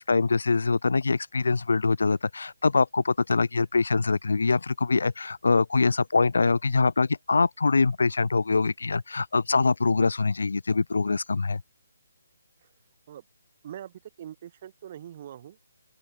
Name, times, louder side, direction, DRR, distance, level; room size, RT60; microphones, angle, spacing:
voice 1, 0.0-11.6, left 4 dB, 70° left, 1.0 m, -24 dB
voice 2, 13.6-15.6, right 10 dB, 35° right, 6.9 m, -43 dB
open air
figure-of-eight pair, 145°, 0 cm